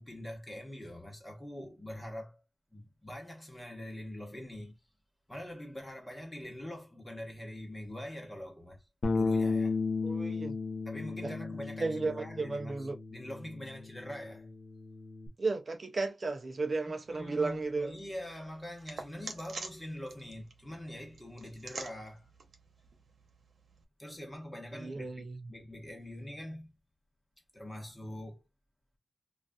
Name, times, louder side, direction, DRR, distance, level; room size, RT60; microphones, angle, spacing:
voice 1, 0.0-2.4 2.7-4.8 5.3-8.9 9.1-9.8 10.8-14.5 17.1-22.3 24.0-26.7 27.5-28.4, left 1 dB, 15° left, 1.1 m, -44 dB
Bass guitar, 9.0-15.3, left 4 dB, 45° left, 0.6 m, -34 dB
voice 2, 10.0-10.6 11.2-11.4 11.8-13.0 15.4-18.0 24.7-25.5, right 3 dB, 40° right, 0.5 m, -34 dB
sound 1, 17.0-23.8, right 4 dB, 80° right, 0.9 m, -48 dB
3.9 x 2.4 x 2.3 m
wide cardioid pair, 160°, 0 cm